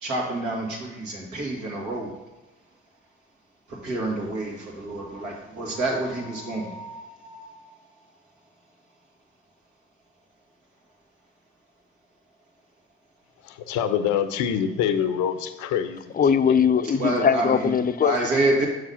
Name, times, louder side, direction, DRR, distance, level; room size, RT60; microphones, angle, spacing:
voice 1, 0.0-2.1 3.7-7.7 17.0-17.7 18.0-18.7, right 2 dB, 75° right, -2 dB, 2.2 m, -28 dB
voice 2, 13.4-16.1 16.4-16.5, left 8 dB, 80° left, 10 dB, 0.6 m, -25 dB
voice 3, 16.1-18.1, left 7 dB, 30° left, 13 dB, 0.5 m, -20 dB
6.3 x 4.9 x 5.6 m, 1.1 s
supercardioid pair, 50°, 30 cm